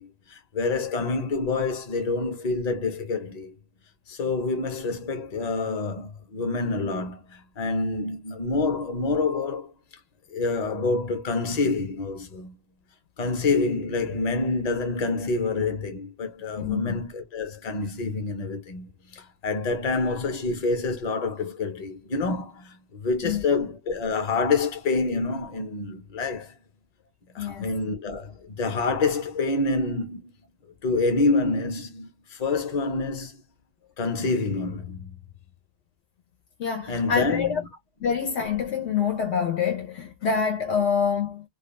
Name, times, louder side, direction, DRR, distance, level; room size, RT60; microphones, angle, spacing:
voice 1, 0.0-3.5 4.1-9.7 10.3-12.5 13.2-26.5 27.3-30.3 30.8-33.4 34.0-35.2 36.9-37.7, left 3 dB, 40° left, 0.8 m, -27 dB
voice 2, 16.6-16.9 23.2-23.4 27.4-27.7 36.6-37.5 38.0-41.4, left 6 dB, 80° left, 1.0 m, -26 dB
2.3 x 2.2 x 3.0 m
omnidirectional pair, 1.1 m